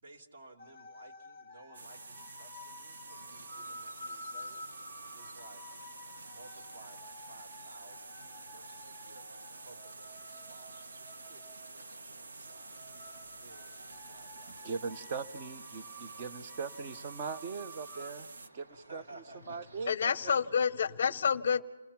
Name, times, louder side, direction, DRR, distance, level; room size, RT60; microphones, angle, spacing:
voice 1, 0.0-5.7 6.3-8.2 8.5-15.2 18.7-19.7, right 2 dB, 35° right, 4 dB, 1.9 m, -57 dB
sound 1, 0.6-18.1, left 1 dB, 5° right, 1.2 m, -51 dB
sound 2, 1.7-18.5, right 3 dB, 65° right, 1.2 m, -49 dB
sound 3, 3.0-19.9, right 2 dB, 85° right, 2.8 m, -58 dB
voice 2, 14.5-20.4, right 5 dB, 20° right, 9 dB, 0.6 m, -41 dB
voice 3, 19.9-21.6, left 6 dB, 35° left, 18 dB, 0.7 m, -28 dB
28.5 x 19.5 x 5.9 m, 1.2 s
hypercardioid pair, 180°, 0 cm